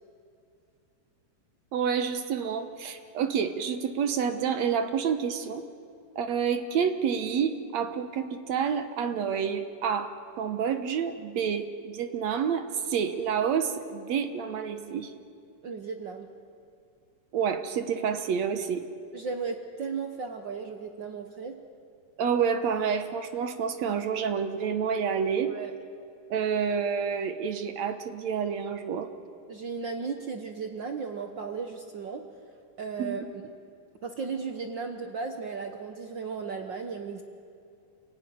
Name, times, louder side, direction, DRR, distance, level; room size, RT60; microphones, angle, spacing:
voice 1, 1.7-5.6 6.2-15.1 17.3-18.8 22.2-25.5 26.3-29.1 33.0-33.2, right 7 dB, 65° right, 8 dB, 2.1 m, -28 dB
voice 2, 15.6-16.3 19.1-21.6 25.5-25.7 29.5-32.2 32.8-33.4 34.0-37.2, right 5 dB, 85° right, 4 dB, 1.0 m, -35 dB
28.5 x 16.5 x 9.5 m, 2.4 s
omnidirectional pair, 3.8 m